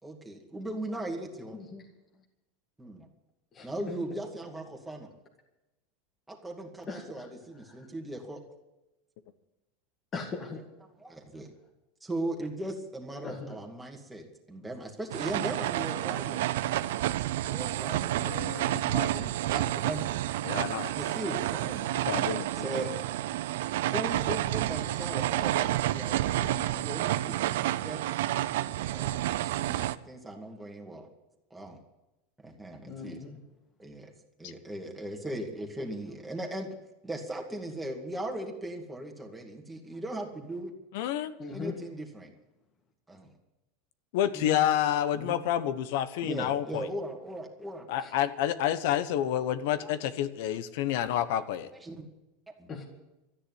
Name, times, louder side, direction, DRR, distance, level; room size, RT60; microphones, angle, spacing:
voice 1, 0.0-1.6 2.8-3.1 3.6-5.1 6.3-8.4 11.0-11.5 12.0-16.9 17.5-18.2 18.6-20.1 20.9-22.9 23.9-27.4 27.8-28.0 28.9-29.1 29.4-31.1 31.5-31.8 32.4-33.2 33.8-34.1 34.4-36.7 37.0-40.7 41.5-42.3 43.1-43.3 44.3-44.7 45.1-45.4 46.2-47.9 49.8-49.9 50.5-50.6 51.0-51.1 51.8-52.1 52.5-52.7, right 1 dB, 5° right, 1 dB, 2.2 m, -38 dB
voice 2, 6.9-7.3 7.8-7.9 10.1-10.6 13.2-13.6 18.7-19.1 32.9-33.4 41.4-41.7 48.0-48.1 52.7-52.8, left 4 dB, 25° left, 1 dB, 1.9 m, -39 dB
sound 1, 15.1-29.9, right 14 dB, 80° right, 0.6 m, -30 dB
voice 3, 18.2-19.3 20.4-20.9 22.1-22.5 34.4-34.5 40.9-41.3 44.1-46.9 47.9-51.7, left 11 dB, 65° left, 13 dB, 1.1 m, -29 dB
13.5 x 10.0 x 9.5 m, 0.96 s
supercardioid pair, 155°, 0 cm